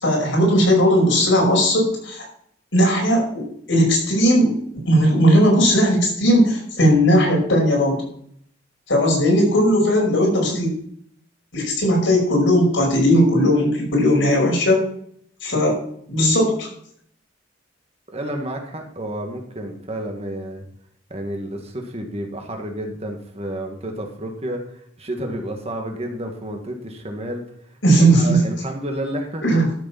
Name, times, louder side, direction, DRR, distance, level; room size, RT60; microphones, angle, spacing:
voice 1, 0.0-2.2 2.7-4.5 4.9-8.0 8.9-10.7 11.5-14.8 15.4-15.8 16.1-16.7 27.8-28.4 29.4-29.6, equal, 70° left, -1 dB, 5.3 m, -17 dB
voice 2, 18.1-20.6 21.1-24.6 25.0-27.4 28.1-29.4, right 1 dB, 35° right, 3 dB, 1.8 m, -30 dB
12.5 x 6.8 x 5.8 m, 0.66 s
head